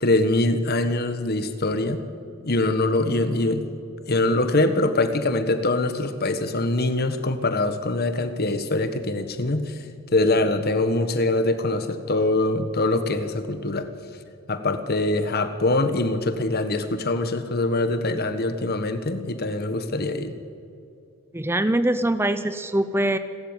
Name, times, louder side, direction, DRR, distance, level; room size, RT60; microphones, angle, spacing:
voice 1, 0.0-2.0 2.4-3.7 4.1-9.8 10.1-13.9 14.5-20.3, left 2 dB, 45° left, 10 dB, 1.4 m, -23 dB
voice 2, 21.3-23.2, right 1 dB, 10° right, 11 dB, 0.7 m, -23 dB
28.5 x 13.0 x 9.0 m, 2.5 s
head